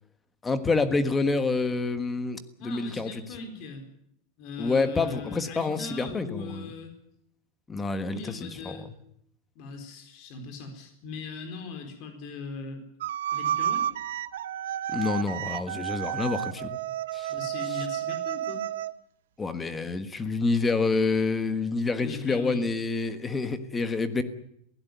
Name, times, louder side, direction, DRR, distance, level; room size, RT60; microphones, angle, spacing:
voice 1, 0.4-3.1 4.6-6.7 7.7-8.8 14.9-16.8 17.1-17.3 19.4-24.2, left 3 dB, 10° left, 10 dB, 1.4 m, -28 dB
voice 2, 2.6-3.9 4.4-6.9 8.1-8.9 9.5-12.8 13.3-13.9 17.3-18.7 22.0-22.7, left 4 dB, 40° left, 6 dB, 4.4 m, -39 dB
sound 1, 13.0-18.9, right 11 dB, 90° right, 0.9 m, -31 dB
22.0 x 16.5 x 9.4 m, 0.73 s
supercardioid pair, 170°, 0 cm